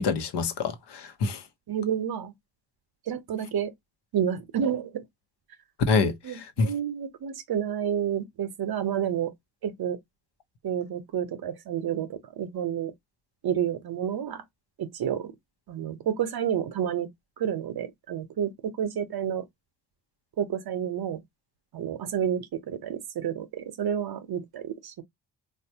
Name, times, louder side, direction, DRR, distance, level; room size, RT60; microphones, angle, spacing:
voice 1, 0.0-1.4 5.9-6.7, left 4 dB, 65° left, 0.9 m, -26 dB
voice 2, 1.7-2.3 3.1-3.7 4.1-5.0 6.2-9.3 9.6-10.0 10.6-12.9 13.4-14.4 14.8-15.3 15.7-17.1 17.4-19.4 20.4-21.2 21.7-25.0, right 9 dB, 55° right, 0.8 m, -30 dB
3.4 x 2.4 x 2.7 m
supercardioid pair, 60°, 44 cm